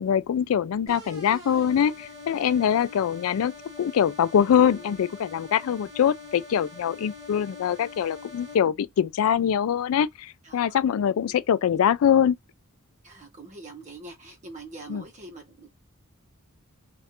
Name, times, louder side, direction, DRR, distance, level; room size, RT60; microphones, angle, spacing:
voice 1, 0.0-3.5 3.8-12.4 14.9-15.0, left 8 dB, 75° left, 0.3 m, -23 dB
sound 1, 0.9-8.5, left 3 dB, 20° right, 1.4 m, -44 dB
sound 2, 4.4-5.4, left 1 dB, 45° left, 1.3 m, -47 dB
voice 2, 10.4-10.8 11.2-11.3 13.0-15.7, right 3 dB, 35° right, 1.0 m, -44 dB
3.2 x 2.4 x 2.9 m
head